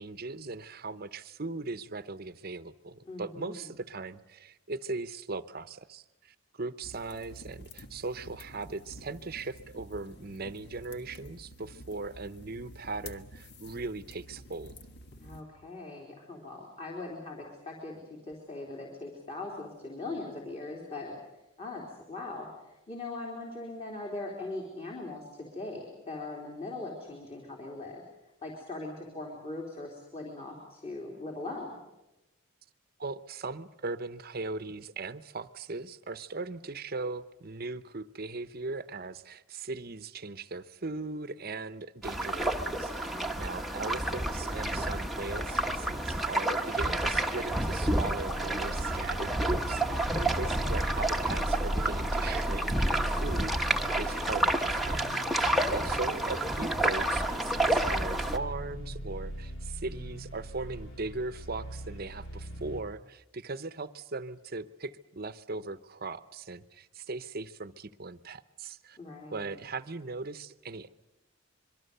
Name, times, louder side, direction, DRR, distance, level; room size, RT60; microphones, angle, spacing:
voice 1, 0.0-14.8 33.0-69.0 69.3-70.9, right 3 dB, 45° right, 13 dB, 0.9 m, -39 dB
voice 2, 3.1-3.7 15.2-21.1 21.6-28.0 28.4-31.8 43.0-43.3 55.4-56.0 69.0-69.6, left 2 dB, 30° left, -1 dB, 3.6 m, -40 dB
sound 1, 6.8-15.4, left 1 dB, 50° left, 1.5 m, -50 dB
sound 2, 42.0-58.4, right 1 dB, ahead, 1.1 m, -30 dB
sound 3, 48.3-62.8, right 1 dB, 70° left, 3.1 m, -39 dB
25.5 x 23.0 x 6.8 m, 0.95 s
head